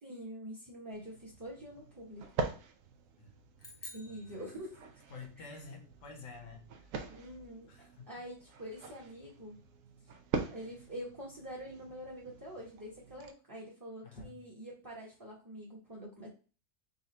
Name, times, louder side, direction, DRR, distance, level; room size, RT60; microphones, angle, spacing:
voice 1, 0.0-2.5 3.9-4.8 5.5-5.6 7.1-9.6 10.5-16.3, equal, 15° right, -4 dB, 0.9 m, -46 dB
sound 1, 0.9-13.3, right 5 dB, 90° right, 1.0 m, -44 dB
sound 2, 3.6-5.2, left 2 dB, 25° left, 0.6 m, -51 dB
voice 2, 5.1-6.6 7.7-8.1 14.0-14.4, left 4 dB, 75° left, 3 dB, 1.3 m, -49 dB
4.1 x 2.4 x 4.1 m, 0.36 s
omnidirectional pair, 1.3 m